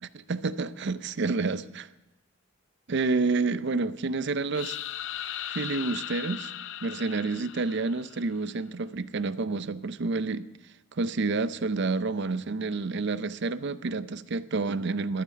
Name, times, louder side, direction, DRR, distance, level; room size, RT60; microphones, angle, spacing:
voice 1, 0.0-1.9 2.9-4.8 5.5-6.5 6.8-10.5 10.9-15.2, right 3 dB, 60° right, 14 dB, 0.6 m, -29 dB
sound 1, 4.5-8.4, left 11 dB, 65° left, 0.5 m, -38 dB
14.0 x 12.5 x 4.7 m, 1.0 s
head